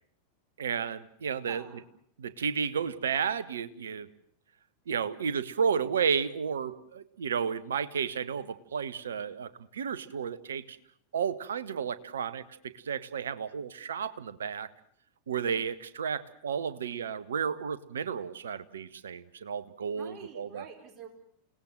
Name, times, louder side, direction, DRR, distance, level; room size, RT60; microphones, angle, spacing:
voice 1, 0.6-1.6 2.2-4.1 4.9-10.8 11.1-14.7 15.3-20.7, right 7 dB, 65° right, 15 dB, 1.3 m, -32 dB
voice 2, 1.4-1.8 19.9-21.1, right 7 dB, 30° right, 4 dB, 4.4 m, -47 dB
29.5 x 18.5 x 7.8 m, 0.65 s
figure-of-eight pair, 90°, 0 cm